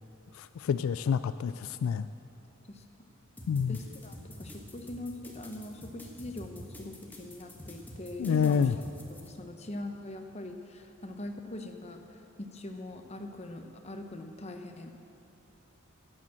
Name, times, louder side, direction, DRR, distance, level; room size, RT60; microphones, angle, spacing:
voice 1, 0.3-2.1 3.5-3.8 8.2-8.8, left 7 dB, 80° left, 13 dB, 0.3 m, -28 dB
sound 1, 3.4-9.3, equal, 10° left, 1.3 m, -47 dB
voice 2, 3.7-8.7 9.1-14.9, left 1 dB, 30° left, 5 dB, 0.8 m, -42 dB
11.5 x 8.9 x 7.5 m, 2.9 s
head